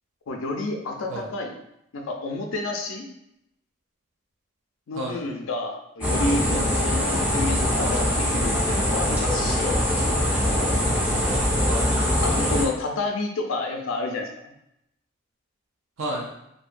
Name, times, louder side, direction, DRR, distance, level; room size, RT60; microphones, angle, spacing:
voice 1, 0.3-1.5 1.9-3.1 4.9-9.8 12.2-14.3, left 2 dB, 85° left, 3 dB, 0.4 m, -30 dB
sound 1, 6.0-12.6, equal, 5° right, 0.4 m, -23 dB
voice 2, 10.3-12.0 16.0-16.3, right 1 dB, 75° right, -2 dB, 0.5 m, -34 dB
2.6 x 2.2 x 2.5 m, 0.81 s
head